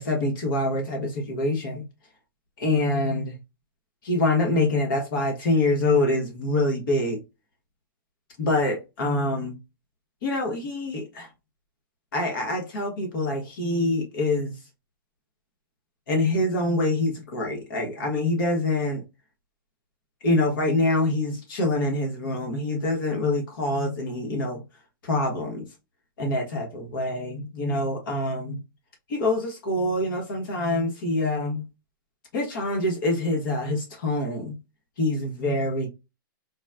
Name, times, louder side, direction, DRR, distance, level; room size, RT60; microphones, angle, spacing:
voice 1, 0.0-1.8 2.6-3.3 4.0-7.2 8.4-9.6 10.2-11.3 12.1-14.6 16.1-19.0 20.2-24.6 25.0-25.6 26.2-28.6 29.1-31.6 32.3-34.6 35.0-35.9, left 2 dB, 65° left, 1.2 m, -25 dB
4.0 x 2.1 x 2.5 m
hypercardioid pair, 130°, 12 cm